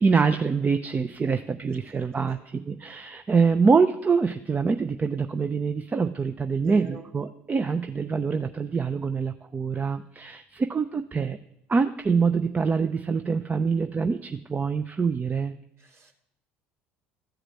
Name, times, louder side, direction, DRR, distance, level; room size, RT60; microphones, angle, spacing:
voice 1, 0.0-11.4 11.7-15.5, right 5 dB, 25° right, 8 dB, 0.6 m, -25 dB
voice 2, 6.6-7.1 13.6-13.8 15.8-16.1, right 4 dB, 45° right, 2 dB, 2.7 m, -44 dB
14.0 x 4.9 x 7.6 m, 0.81 s
hypercardioid pair, 70°, 6 cm